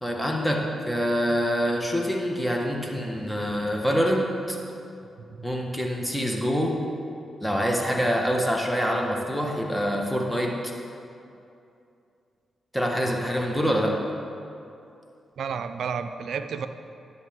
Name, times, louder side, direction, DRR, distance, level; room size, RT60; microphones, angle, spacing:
voice 1, 0.0-4.6 5.4-6.8 7.4-10.5 12.7-14.0, equal, 5° left, 0 dB, 1.5 m, -25 dB
voice 2, 15.4-16.7, right 6 dB, 75° right, 9 dB, 0.5 m, -31 dB
11.0 x 8.1 x 3.7 m, 2.6 s
supercardioid pair, 55°, 0 cm